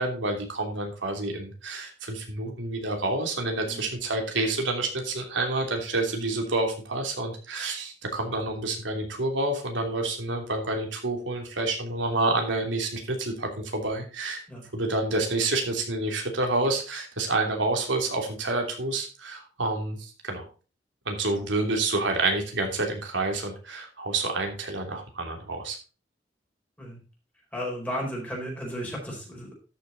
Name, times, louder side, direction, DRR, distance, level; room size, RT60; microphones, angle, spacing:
voice 1, 0.0-14.4 14.7-20.5 21.0-25.8, right 2 dB, 85° right, 3 dB, 3.1 m, -28 dB
voice 2, 27.5-29.5, equal, 10° left, -2 dB, 4.6 m, -34 dB
13.0 x 6.9 x 4.0 m, 0.34 s
head